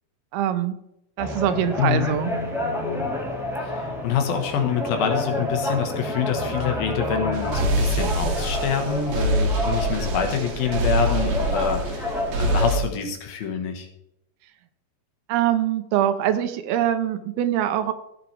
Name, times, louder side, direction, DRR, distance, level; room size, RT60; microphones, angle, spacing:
voice 1, 0.3-0.8 1.2-2.3 15.3-17.9, right 11 dB, 85° right, 10 dB, 2.6 m, -23 dB
sound 1, 1.2-12.7, left 1 dB, 5° right, 0.3 m, -29 dB
voice 2, 1.8-2.1 3.6-13.9, left 7 dB, 70° left, 5 dB, 3.1 m, -26 dB
sound 2, 7.3-12.8, right 1 dB, 65° right, 2.3 m, -25 dB
16.5 x 7.3 x 3.4 m, 0.83 s
omnidirectional pair, 4.6 m